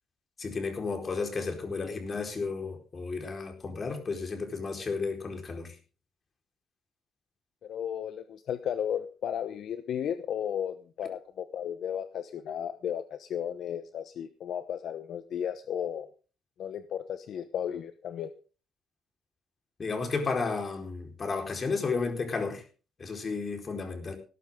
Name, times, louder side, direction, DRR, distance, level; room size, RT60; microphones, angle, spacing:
voice 1, 0.4-5.7 19.8-22.6 23.0-24.2, left 4 dB, 40° left, 4 dB, 4.5 m, -33 dB
voice 2, 7.6-16.1 16.6-18.3, left 9 dB, 70° left, 10 dB, 1.0 m, -34 dB
17.5 x 12.0 x 3.8 m, 0.36 s
cardioid pair, 90°, 0 cm